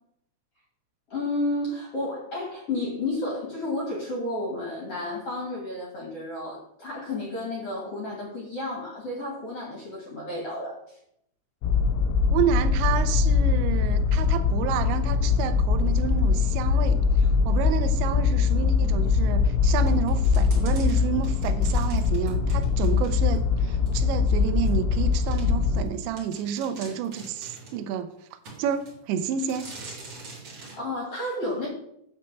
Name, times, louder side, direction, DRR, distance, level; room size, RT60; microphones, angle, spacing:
voice 1, 1.1-10.8 30.6-31.7, left 2 dB, 45° left, -2 dB, 2.1 m, -31 dB
sound 1, 11.6-25.9, left 5 dB, 85° left, 3.2 m, -22 dB
voice 2, 12.3-28.1 28.6-29.7, right 8 dB, 85° right, 9 dB, 2.6 m, -30 dB
sound 2, 19.8-23.4 23.9-24.0 24.7-24.8 25.3-25.5 25.9-26.0 26.2-27.8 28.4-29.0 29.4-30.8, right 3 dB, 40° right, 2.8 m, -44 dB
9.6 x 4.4 x 7.5 m, 0.73 s
omnidirectional pair, 5.7 m